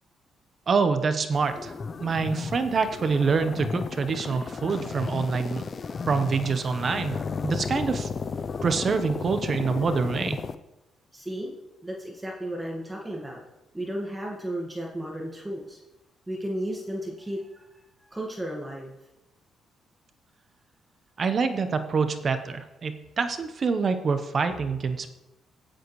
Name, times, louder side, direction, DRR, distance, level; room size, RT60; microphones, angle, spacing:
voice 1, 0.7-1.7 2.0-5.6 6.1-8.1 8.6-10.4 21.2-25.1, right 5 dB, 45° right, 9 dB, 1.0 m, -26 dB
sound 1, 1.3-10.5, left 5 dB, 40° left, 0.5 m, -34 dB
voice 2, 11.1-11.5 11.8-13.4 13.7-15.8 16.3-19.0, right 1 dB, 15° right, -1 dB, 1.7 m, -34 dB
16.5 x 7.8 x 3.2 m, 1.0 s
cardioid pair, 90°, 0 cm